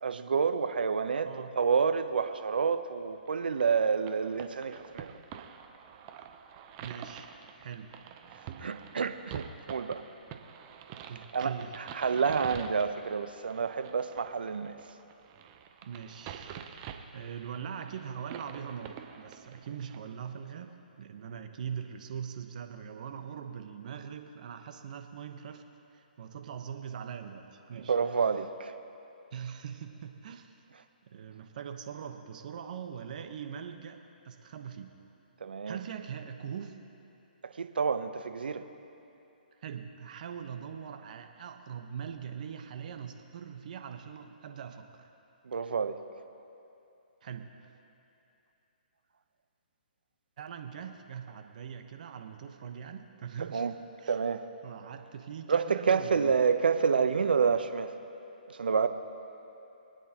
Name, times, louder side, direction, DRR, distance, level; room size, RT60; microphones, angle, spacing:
voice 1, 0.0-1.3 1.6-5.1 8.4-10.0 11.3-14.8 27.8-28.7 35.4-35.8 37.5-38.6 45.4-46.0 53.5-53.7 54.1-54.4 55.5-57.9 58.5-58.9, right 6 dB, 75° right, 9 dB, 0.8 m, -28 dB
sound 1, 3.3-20.0, right 8 dB, 30° right, 0.7 m, -47 dB
voice 2, 6.8-7.3 7.6-7.9 11.1-11.8 15.8-25.6 25.9-27.9 29.3-30.6 31.0-34.0 34.2-34.9 35.7-36.8 39.6-45.1 47.2-47.7 50.4-53.6 54.0-54.2 54.6-56.4, right 7 dB, 55° right, 6 dB, 1.1 m, -42 dB
25.0 x 9.2 x 3.0 m, 2.8 s
hypercardioid pair, 145°, 5 cm